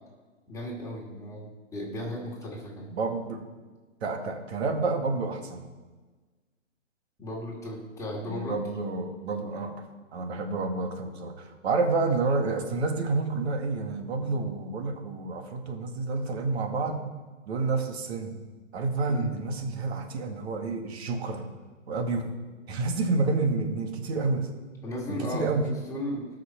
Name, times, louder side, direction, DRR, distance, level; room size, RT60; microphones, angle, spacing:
voice 1, 0.5-2.9 7.2-8.6 19.1-19.3 24.8-26.3, left 1 dB, 10° left, -4 dB, 2.9 m, -35 dB
voice 2, 2.9-3.4 4.0-5.7 8.3-9.8 10.1-17.0 17.5-18.4 18.7-21.5 21.9-22.3 22.7-24.5 25.1-25.6, right 3 dB, 55° right, 4 dB, 2.2 m, -29 dB
19.5 x 6.6 x 4.6 m, 1.3 s
hypercardioid pair, 135°, 37 cm